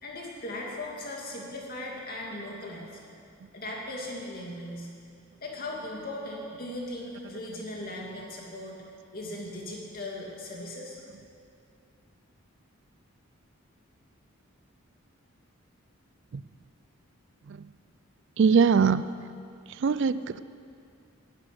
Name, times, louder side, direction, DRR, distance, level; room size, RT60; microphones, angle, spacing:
voice 1, 0.0-3.0 3.5-4.9 5.4-8.8 9.1-11.0, left 1 dB, 45° left, -2 dB, 2.6 m, -38 dB
voice 2, 18.4-19.2 19.7-20.4, right 5 dB, 55° right, 15 dB, 0.4 m, -23 dB
11.5 x 10.0 x 9.7 m, 2.4 s
head